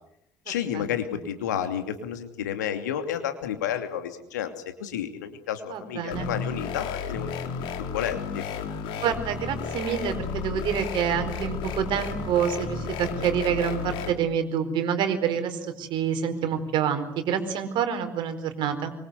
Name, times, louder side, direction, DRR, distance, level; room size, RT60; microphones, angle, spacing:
voice 1, 0.5-4.5 4.8-7.4 7.8-8.4, left 9 dB, 75° left, 8 dB, 2.7 m, -31 dB
voice 2, 5.7-6.3 9.0-18.9, right 8 dB, 55° right, 8 dB, 4.6 m, -27 dB
sound 1, 6.1-14.1, left 6 dB, 60° left, 3.5 m, -33 dB
25.5 x 24.5 x 8.2 m, 0.80 s
figure-of-eight pair, 55°, 10 cm